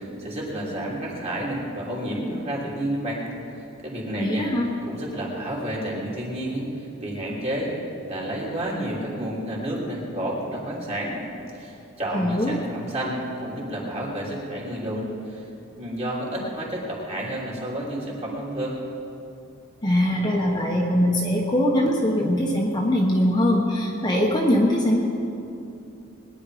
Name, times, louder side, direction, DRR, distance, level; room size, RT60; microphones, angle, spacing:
voice 1, 0.0-3.2 3.5-4.5 4.9-7.7 8.1-11.2 11.5-15.5 15.8-18.8, right 1 dB, 30° right, -4 dB, 3.2 m, -30 dB
voice 2, 4.2-4.7 12.1-12.6 19.8-25.0, equal, 20° left, -2 dB, 1.2 m, -22 dB
21.0 x 10.5 x 5.1 m, 2.7 s
head